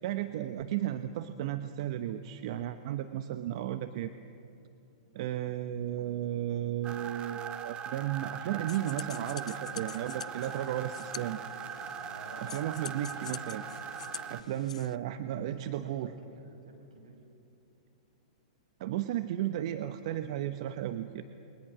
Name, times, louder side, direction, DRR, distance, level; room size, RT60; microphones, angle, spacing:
voice 1, 0.0-4.1 5.1-11.4 12.4-13.6 14.3-16.1 18.8-21.2, right 12 dB, 55° right, 9 dB, 1.0 m, -34 dB
sound 1, 6.8-14.4, right 8 dB, 30° right, 1.1 m, -41 dB
sound 2, 8.7-15.0, left 8 dB, 80° left, 0.5 m, -45 dB
voice 2, 12.1-12.6 15.3-17.2, right 2 dB, 80° right, 4 dB, 5.7 m, -51 dB
29.0 x 22.0 x 6.2 m, 2.7 s
hypercardioid pair, 115°, 4 cm